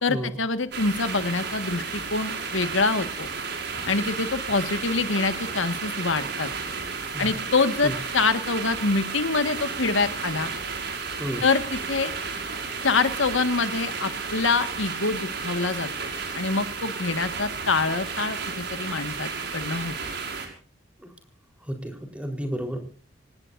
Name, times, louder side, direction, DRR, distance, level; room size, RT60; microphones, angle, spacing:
voice 1, 0.0-3.3 3.9-6.5 7.2-10.5 11.4-12.1 12.8-15.9 16.3-19.9, left 3 dB, 80° left, 10 dB, 1.7 m, -25 dB
sound 1, 0.7-20.5, right 5 dB, 55° right, 5.7 m, -33 dB
voice 2, 21.7-22.8, equal, 5° right, 4 dB, 4.1 m, -31 dB
26.5 x 18.5 x 2.7 m, 0.42 s
head